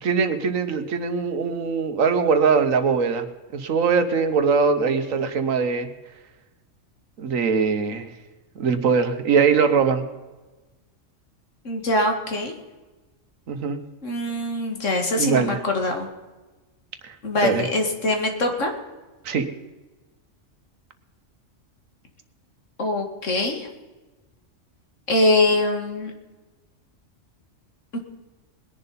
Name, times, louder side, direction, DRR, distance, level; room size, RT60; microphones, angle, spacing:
voice 1, 0.0-3.3 3.5-5.9 7.2-8.1 8.6-10.1 13.5-13.8 15.2-15.6 17.0-17.1 17.4-17.7 19.2-19.5, right 5 dB, 90° right, 9 dB, 1.5 m, -21 dB
voice 2, 11.6-12.5 14.0-16.1 17.2-18.7 22.8-23.7 25.1-26.1 27.9-28.0, left 2 dB, 70° left, 3 dB, 2.3 m, -23 dB
20.5 x 10.5 x 4.2 m, 1.2 s
omnidirectional pair, 1.3 m